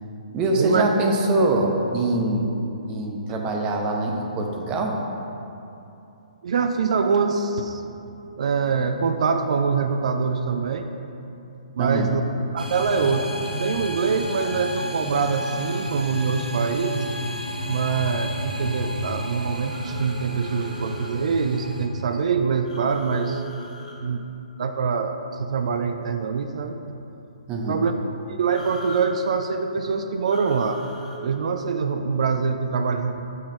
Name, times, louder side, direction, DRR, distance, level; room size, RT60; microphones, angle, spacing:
voice 1, 0.3-2.5 2.9-5.0 11.8-12.1 27.5-27.8, right 2 dB, 20° right, 1 dB, 0.8 m, -23 dB
voice 2, 6.4-7.8 8.4-10.9 11.7-12.2 12.5-17.1 17.6-23.4 24.0-24.3 24.6-26.8 27.7-27.9 28.3-30.8 31.2-33.2, right 5 dB, 55° right, 7 dB, 0.4 m, -24 dB
sound 1, 12.6-21.9, left 1 dB, 85° right, 0.8 m, -31 dB
sound 2, 19.7-21.1 22.6-24.0 28.5-29.1 30.2-31.2, left 1 dB, 70° left, 1.2 m, -40 dB
7.2 x 4.8 x 4.3 m, 2.8 s
figure-of-eight pair, 125°, 4 cm